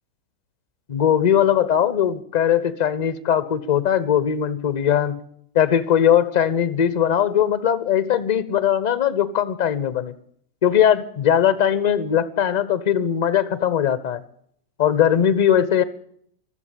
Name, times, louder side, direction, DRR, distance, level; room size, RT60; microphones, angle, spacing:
voice 1, 0.9-5.2 5.5-10.1 10.6-14.2 14.8-15.8, left 9 dB, 55° left, 16 dB, 1.1 m, -20 dB
21.0 x 7.4 x 8.5 m, 0.65 s
figure-of-eight pair, 90°, 0 cm